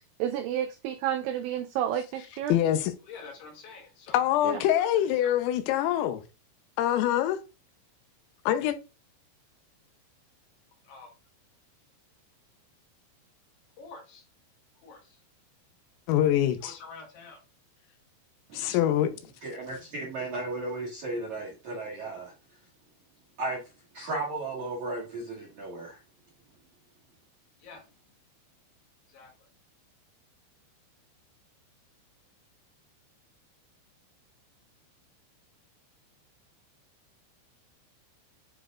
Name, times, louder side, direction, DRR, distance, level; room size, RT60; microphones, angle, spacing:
voice 1, 0.2-2.5 4.4-4.6, right 10 dB, 90° right, 2.6 m, -30 dB
voice 2, 2.5-2.9 4.1-6.2 6.8-7.4 8.5-8.8 16.1-16.7 18.5-19.1, left 11 dB, 90° left, 3.4 m, -24 dB
voice 3, 3.0-4.2 4.5-5.3 10.8-11.1 13.8-14.2 14.8-15.2 16.6-17.4 27.6-27.9 29.1-29.5, left 4 dB, 65° left, 2.9 m, -47 dB
voice 4, 18.5-18.9 19.4-22.3 23.4-23.6 23.9-26.0, right 2 dB, 60° right, 2.0 m, -35 dB
9.7 x 5.1 x 2.4 m
omnidirectional pair, 5.9 m